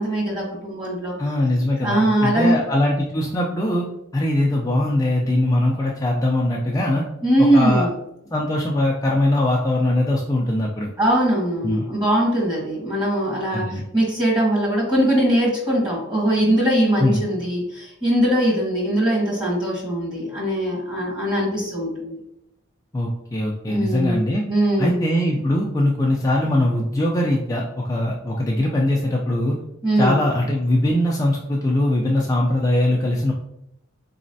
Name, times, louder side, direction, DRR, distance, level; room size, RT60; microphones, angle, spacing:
voice 1, 0.0-1.1 1.8-2.6 7.2-7.9 11.0-22.2 23.7-25.0 29.8-30.1, right 1 dB, 20° right, -4 dB, 1.3 m, -21 dB
voice 2, 1.2-3.9 4.1-7.0 7.4-7.9 8.3-10.9 11.6-11.8 13.5-13.8 17.0-17.2 22.9-24.4 24.8-29.6 30.0-33.3, left 1 dB, 15° left, -2 dB, 0.3 m, -21 dB
4.1 x 3.0 x 2.6 m, 0.81 s
head